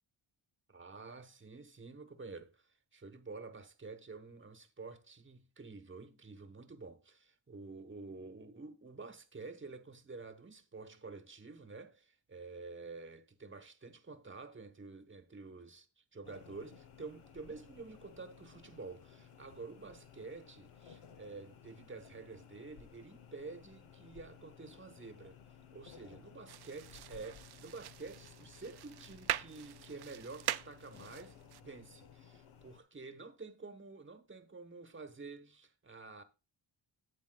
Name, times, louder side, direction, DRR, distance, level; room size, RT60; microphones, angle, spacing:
voice 1, 0.7-25.4 25.7-31.4 31.6-36.2, right 3 dB, 25° right, 1.1 m, -49 dB
sound 1, 16.2-32.8, left 8 dB, 90° left, 1.0 m, -57 dB
sound 2, 26.5-31.6, right 12 dB, 55° right, 0.5 m, -42 dB
11.5 x 8.5 x 2.3 m
wide cardioid pair, 110°, 48 cm